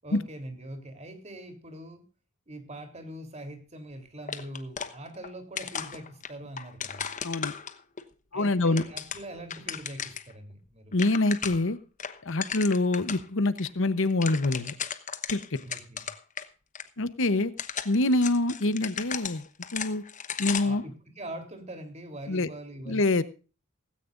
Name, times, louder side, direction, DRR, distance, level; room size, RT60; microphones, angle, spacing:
voice 1, 0.0-2.0 2.5-7.1 8.3-10.9 15.6-16.1 20.6-23.1, right 1 dB, 30° right, 6 dB, 3.4 m, -42 dB
sound 1, 4.3-5.3 5.6-8.0 8.5-10.3 10.6-10.7 10.9-11.7 12.0-13.2 13.6-13.7 14.0-16.5 16.7-16.8 17.4-20.8, left 7 dB, 35° left, 1.1 m, -36 dB
voice 2, 8.3-8.8 10.9-11.8 12.3-14.7 15.3-15.6 17.0-17.5 17.8-19.4 19.7-20.0 20.4-20.8 22.3-22.5 22.9-23.2, left 2 dB, 60° left, 13 dB, 0.9 m, -25 dB
17.5 x 16.0 x 2.5 m, 0.35 s
head